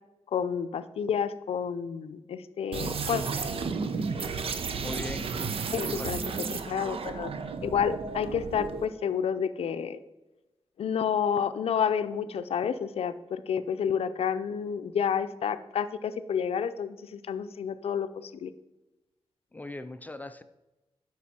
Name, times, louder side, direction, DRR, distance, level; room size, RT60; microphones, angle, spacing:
voice 1, 0.3-3.2 5.7-7.3 7.6-10.0 10.8-18.5, left 7 dB, 85° left, 12 dB, 0.5 m, -30 dB
sound 1, 2.7-8.9, right 5 dB, 70° right, 0.7 m, -33 dB
voice 2, 4.8-5.3 5.9-6.2 19.5-20.4, left 2 dB, 15° left, 10 dB, 0.4 m, -39 dB
9.4 x 6.1 x 4.3 m, 1.0 s
wide cardioid pair, 140°, 10 cm